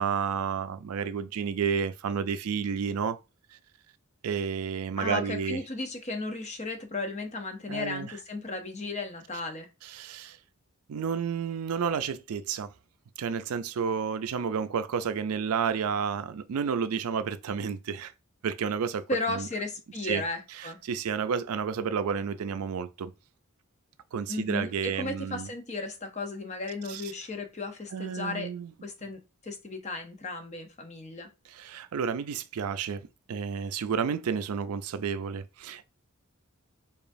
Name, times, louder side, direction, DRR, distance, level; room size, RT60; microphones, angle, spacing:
voice 1, 0.0-3.2 4.2-5.6 7.7-8.1 9.8-10.4 10.9-12.7 13.2-18.1 18.4-19.5 20.0-20.2 20.6-23.1 24.1-25.5 26.9-27.1 27.9-28.7 31.5-35.9, right 6 dB, 90° right, 0.4 m, -31 dB
voice 2, 5.0-9.7 19.1-20.8 24.3-28.5 28.8-31.3, left 2 dB, 30° left, 0.7 m, -35 dB
4.9 x 2.4 x 2.6 m
head